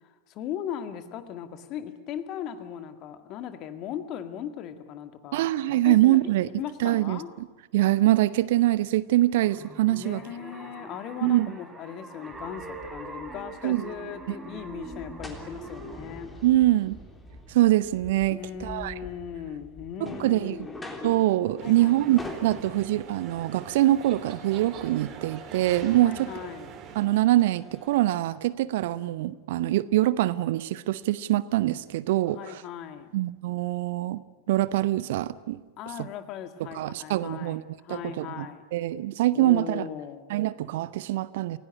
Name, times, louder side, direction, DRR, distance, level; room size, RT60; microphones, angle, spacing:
voice 1, 0.3-5.4 5.8-6.3 6.6-7.3 9.9-16.4 18.3-20.9 21.6-22.0 26.0-26.7 32.3-33.1 35.8-38.6 39.3-40.3, left 9 dB, 35° left, 9 dB, 2.0 m, -38 dB
voice 2, 5.3-6.5 6.8-7.2 7.7-10.2 11.2-11.5 13.6-13.8 16.4-17.0 17.5-18.9 20.0-20.7 21.0-26.3 26.9-32.6 33.1-34.2 34.5-35.6 36.0-36.1 36.7-38.5 38.7-39.8 40.3-41.6, right 15 dB, 55° right, 17 dB, 0.8 m, -24 dB
sound 1, 9.1-16.3, right 3 dB, 10° right, 3.9 m, -43 dB
sound 2, 12.3-28.1, left 1 dB, 10° left, 3.4 m, -45 dB
sound 3, 21.6-27.1, right 7 dB, 35° right, 3.3 m, -44 dB
28.5 x 17.0 x 9.8 m, 1.2 s
figure-of-eight pair, 90°, 0 cm